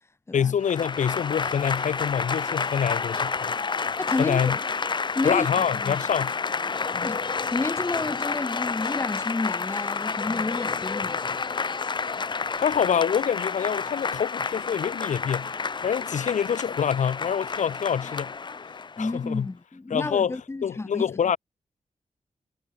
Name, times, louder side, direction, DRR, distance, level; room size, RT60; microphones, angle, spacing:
voice 1, 0.3-3.5 4.2-4.6 5.2-6.4 12.6-15.5 15.8-18.3 19.0-19.5 19.9-21.4, left 8 dB, 85° left, 3.7 m, -26 dB
Applause / Crowd, 0.6-19.2, left 5 dB, 40° left, 3.4 m, -30 dB
voice 2, 4.0-4.6 5.1-6.0 7.0-11.2 19.0-21.1, left 3 dB, 20° left, 3.5 m, -30 dB
wide cardioid pair, 175°, 12 cm